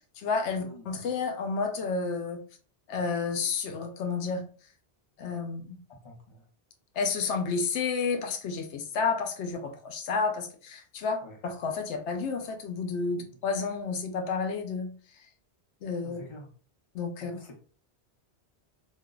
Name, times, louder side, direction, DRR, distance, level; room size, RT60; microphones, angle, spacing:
voice 1, 0.2-2.4 2.9-4.4 5.2-5.8 7.0-14.9 15.8-16.2 16.9-17.3, left 4 dB, 90° left, 5 dB, 0.9 m, -31 dB
voice 2, 6.0-6.4 11.2-11.4 11.9-12.0 13.2-13.4 16.0-16.5 17.3-17.6, left 1 dB, 30° left, 1 dB, 0.8 m, -47 dB
2.6 x 2.2 x 3.8 m, 0.41 s
omnidirectional pair, 1.2 m